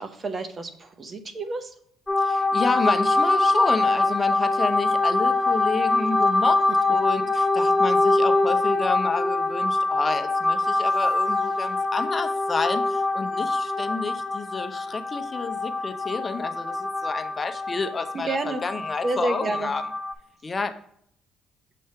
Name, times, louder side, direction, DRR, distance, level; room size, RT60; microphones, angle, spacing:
voice 1, 0.0-1.7 18.1-18.6 19.0-19.7, right 2 dB, 40° right, 8 dB, 0.9 m, -29 dB
sound 1, 2.1-20.1, left 2 dB, 15° left, 1.6 m, -24 dB
voice 2, 2.2-6.6 6.9-18.4 18.6-19.8 20.4-20.7, left 4 dB, 35° left, 8 dB, 0.7 m, -30 dB
6.7 x 3.1 x 5.4 m, 0.69 s
supercardioid pair, 70°, 0 cm